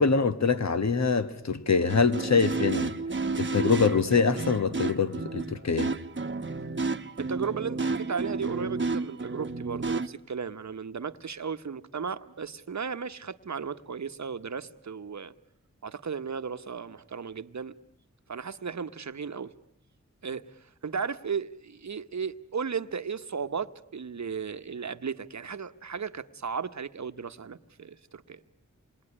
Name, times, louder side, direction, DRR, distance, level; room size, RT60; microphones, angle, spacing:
voice 1, 0.0-3.0 3.4-5.9, left 5 dB, 65° left, 1.3 m, -24 dB
sound 1, 1.9-10.1, right 3 dB, 40° right, 1.0 m, -31 dB
voice 2, 7.2-15.3 15.8-17.7 18.3-19.5 20.2-28.4, right 6 dB, 65° right, 1.1 m, -35 dB
27.5 x 22.0 x 9.9 m
wide cardioid pair, 65°, 30 cm